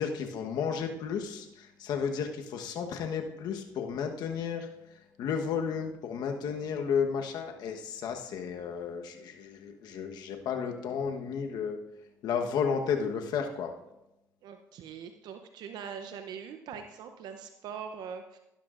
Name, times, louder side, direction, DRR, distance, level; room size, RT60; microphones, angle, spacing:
voice 1, 0.0-4.7 5.2-11.8 12.2-13.7, left 6 dB, 70° left, 4 dB, 1.2 m, -32 dB
voice 2, 14.4-18.4, right 7 dB, 70° right, 7 dB, 0.7 m, -42 dB
15.5 x 12.0 x 2.5 m, 0.91 s
supercardioid pair, 75°, 7 cm